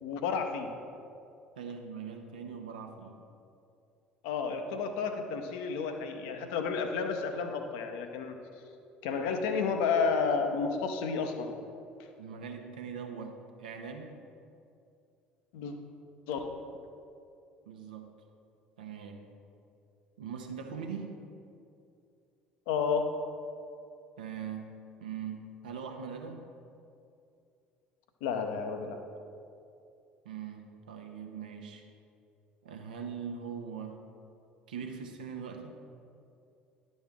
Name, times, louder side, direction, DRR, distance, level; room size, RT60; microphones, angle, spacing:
voice 1, 0.0-0.7 4.2-8.4 9.0-11.5 15.5-15.7 16.3-16.4 22.7-23.1 28.2-29.0, left 5 dB, 65° left, 5 dB, 0.7 m, -31 dB
voice 2, 1.6-3.2 9.5-9.6 12.2-14.1 17.7-18.1 18.8-19.2 20.2-21.2 24.2-24.7 25.0-26.4 30.2-31.8 32.6-34.0 34.7-35.7, right 6 dB, 75° right, 3 dB, 0.8 m, -41 dB
10.5 x 6.3 x 3.5 m, 2.5 s
figure-of-eight pair, 60°, 5 cm